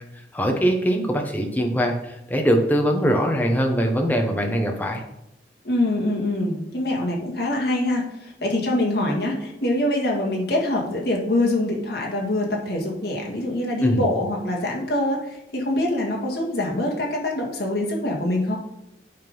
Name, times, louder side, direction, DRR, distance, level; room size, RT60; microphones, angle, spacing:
voice 1, 0.3-5.0 13.8-14.0, equal, 10° left, 2 dB, 1.0 m, -22 dB
voice 2, 5.6-18.6, left 1 dB, 65° left, -1 dB, 1.8 m, -24 dB
8.7 x 3.7 x 5.4 m, 0.82 s
head